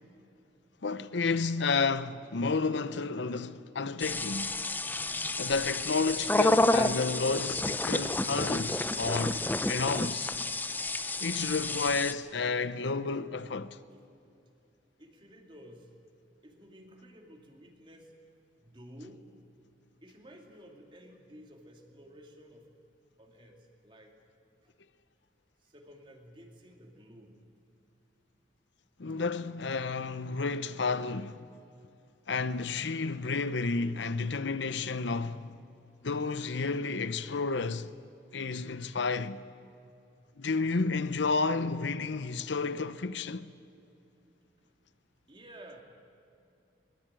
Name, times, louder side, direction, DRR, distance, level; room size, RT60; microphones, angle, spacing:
voice 1, 0.8-4.5 5.4-10.3 11.2-13.8 29.0-31.5 32.3-35.6 36.0-38.0 38.3-39.4 40.4-43.5, left 4 dB, 80° left, 0.7 m, -31 dB
sound 1, 4.0-12.1, left 2 dB, 10° left, 0.6 m, -30 dB
voice 2, 15.0-15.9 16.4-18.1 18.6-19.3 20.0-22.7 23.2-24.2 24.6-24.7 25.6-27.4 45.3-45.8, equal, 25° right, 2.5 m, -53 dB
22.5 x 21.0 x 9.0 m
head